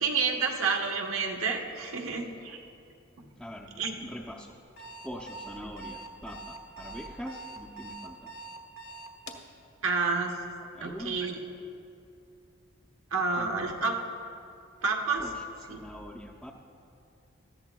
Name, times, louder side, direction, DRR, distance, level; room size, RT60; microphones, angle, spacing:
voice 1, 0.0-2.6 3.2-3.3 3.8-4.0 9.8-10.4 10.8-11.4 13.1-13.9 14.8-15.3 15.7-15.8, right 4 dB, 75° right, 2 dB, 1.1 m, -29 dB
voice 2, 3.4-3.7 4.0-4.5 5.0-8.3 10.7-11.2 13.3-13.8 15.2-16.5, equal, ahead, -4 dB, 0.5 m, -43 dB
Alarm, 4.8-9.5, right 2 dB, 80° left, 1.2 m, -43 dB
18.0 x 14.0 x 2.3 m, 2.6 s
head